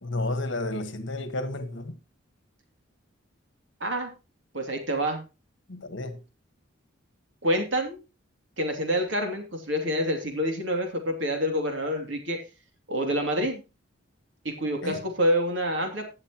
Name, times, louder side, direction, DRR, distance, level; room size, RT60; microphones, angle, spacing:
voice 1, 0.0-2.0 5.7-6.2 14.8-15.1, left 2 dB, 65° left, 1.5 m, -32 dB
voice 2, 3.8-4.1 4.5-5.2 7.4-8.0 8.6-12.4 12.9-13.6 14.4-16.1, equal, 65° right, 2.8 m, -27 dB
17.0 x 6.8 x 3.0 m
head